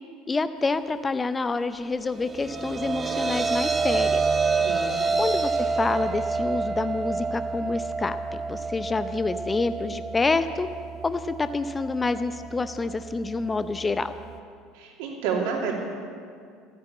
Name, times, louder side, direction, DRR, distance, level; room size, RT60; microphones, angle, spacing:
voice 1, 0.3-4.2 5.2-8.2 8.5-10.7 11.0-14.1, left 3 dB, 20° left, 11 dB, 0.6 m, -27 dB
sound 1, 2.0-14.4, right 4 dB, 30° right, 1.3 m, -28 dB
voice 2, 4.6-5.2 14.7-15.7, right 6 dB, 70° right, 0 dB, 3.0 m, -30 dB
13.5 x 10.5 x 8.5 m, 2.2 s
hypercardioid pair, 70°, 0 cm